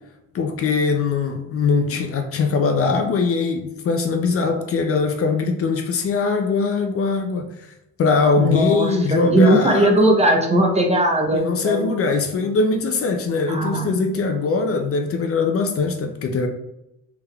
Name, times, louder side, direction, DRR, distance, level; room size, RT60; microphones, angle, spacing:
voice 1, 0.3-7.5 8.0-10.1 11.3-16.5, left 4 dB, 50° left, 5 dB, 0.5 m, -21 dB
voice 2, 8.4-11.9 13.5-13.9, right 1 dB, 20° right, 1 dB, 0.7 m, -18 dB
3.4 x 3.4 x 2.2 m, 0.86 s
cardioid pair, 90°, 30 cm